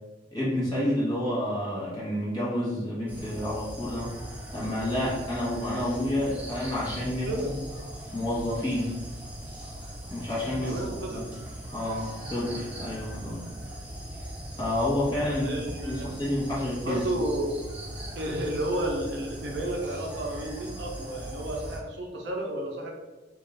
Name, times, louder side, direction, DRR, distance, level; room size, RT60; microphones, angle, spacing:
voice 1, 0.3-4.1 4.5-7.6 8.1-9.0 10.1-11.3 11.7-13.4 14.6-15.5 15.8-17.0, left 1 dB, 20° left, -7 dB, 1.0 m, -29 dB
sound 1, 3.1-21.8, equal, 10° right, 0.4 m, -40 dB
voice 2, 10.6-11.2 15.2-16.2 16.8-17.5 18.2-22.9, right 1 dB, 65° right, 0 dB, 0.5 m, -32 dB
2.5 x 2.3 x 3.1 m, 1.2 s
head